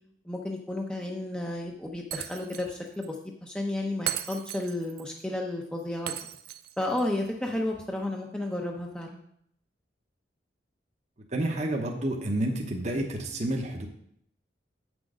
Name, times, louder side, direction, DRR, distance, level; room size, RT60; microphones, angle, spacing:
voice 1, 0.3-3.2 3.4-6.1 6.8-9.2, left 1 dB, 5° left, 0 dB, 0.7 m, -32 dB
Shatter, 2.1-2.8 3.0-3.1 4.1-5.0 6.1-7.0, right 11 dB, 55° right, 0.5 m, -36 dB
voice 2, 11.3-13.9, right 1 dB, 40° right, 2 dB, 1.0 m, -29 dB
8.0 x 6.3 x 5.0 m, 0.71 s
head